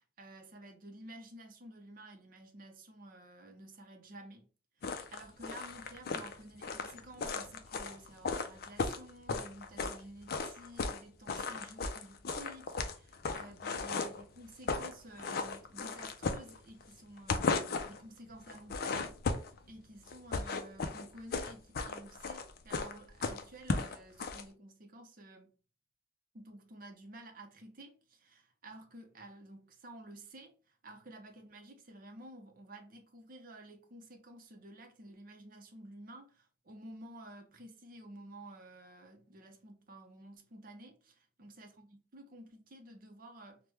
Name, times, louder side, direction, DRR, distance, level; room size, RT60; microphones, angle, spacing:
voice 1, 0.0-4.5 4.8-19.2 19.7-25.5 26.3-30.5 30.8-43.6, right 1 dB, 45° right, 0.6 m, -52 dB
sound 1, 4.8-10.0 10.3-11.0 11.3-14.2 14.5-14.9 15.2-16.9 17.2-18.0 18.5-19.6 20.1-24.4, left 4 dB, 50° left, 0.4 m, -35 dB
3.0 x 2.1 x 3.3 m
head